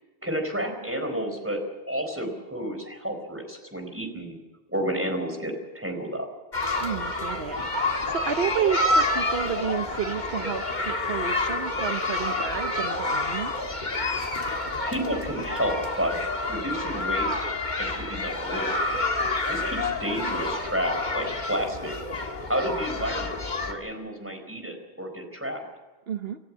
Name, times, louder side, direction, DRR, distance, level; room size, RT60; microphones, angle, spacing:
voice 1, 0.2-1.6 1.9-4.4 4.7-6.3 14.5-16.2 16.5-17.4 17.8-18.8 19.5-22.0 22.5-23.3 23.6-25.6, equal, 10° right, 4 dB, 4.5 m, -31 dB
sound 1, 6.5-23.7, left 2 dB, 45° left, 2.1 m, -28 dB
voice 2, 6.8-13.7 26.1-26.4, right 7 dB, 70° right, 7 dB, 1.2 m, -31 dB
27.5 x 14.5 x 7.4 m, 1.3 s
omnidirectional pair, 1.1 m